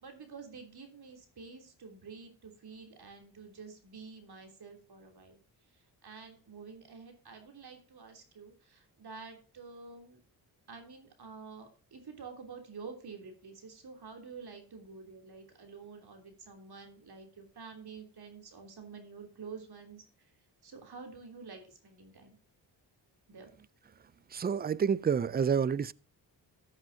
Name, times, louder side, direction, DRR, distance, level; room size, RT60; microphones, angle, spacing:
voice 1, 0.0-5.4 6.0-10.2 10.7-20.0 20.6-22.3 23.3-23.5, right 5 dB, 60° right, 3.2 m, -49 dB
voice 2, 24.3-25.9, right 7 dB, 25° right, 0.4 m, -28 dB
14.5 x 7.8 x 2.8 m
cardioid pair, 70°, 44 cm